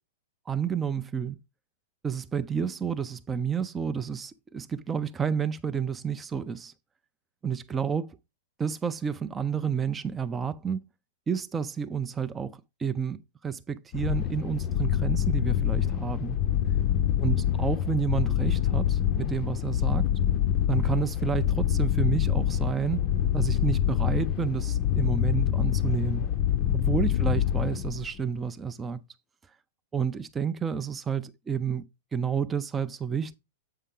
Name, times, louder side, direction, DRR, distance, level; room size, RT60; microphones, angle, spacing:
voice 1, 0.5-1.4 2.0-6.7 7.4-8.2 8.6-10.8 11.3-16.4 17.2-20.1 20.7-23.1 23.3-26.3 26.7-29.0 29.9-31.8 32.1-33.4, right 7 dB, 15° right, 0.4 m, -30 dB
sound 1, 13.9-28.2, left 10 dB, 35° left, 0.6 m, -26 dB
8.2 x 5.5 x 3.7 m
hypercardioid pair, 150°, 0 cm